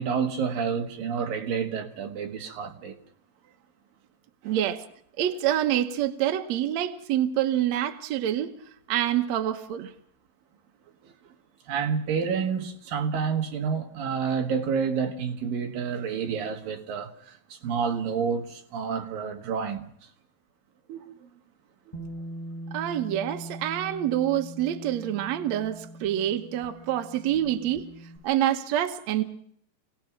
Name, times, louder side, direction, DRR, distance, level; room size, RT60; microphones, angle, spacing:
voice 1, 0.0-3.0 4.5-4.6 11.0-11.1 11.7-19.9 20.9-21.0, right 6 dB, 60° right, 3.2 m, -29 dB
voice 2, 4.4-4.8 5.2-8.5 8.9-9.9 22.7-27.9 28.2-29.2, right 11 dB, 80° right, 1.5 m, -26 dB
Bass guitar, 21.9-28.2, right 1 dB, 10° left, 7.3 m, -41 dB
27.0 x 18.0 x 6.1 m
omnidirectional pair, 5.0 m